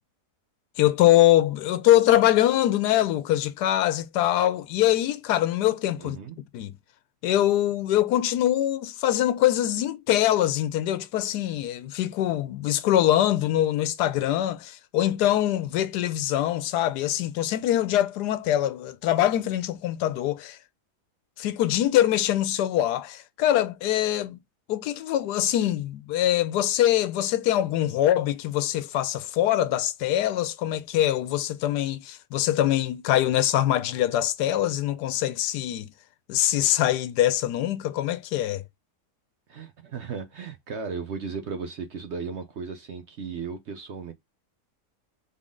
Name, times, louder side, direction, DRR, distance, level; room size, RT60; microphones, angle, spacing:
voice 1, 0.8-6.2 6.5-6.7 7.2-20.6 21.4-24.4 24.7-35.9 36.3-38.6, left 13 dB, 85° left, 1.2 m, -23 dB
voice 2, 6.0-6.4 39.5-44.1, right 5 dB, 55° right, 0.8 m, -35 dB
3.8 x 3.7 x 3.6 m
omnidirectional pair, 1.7 m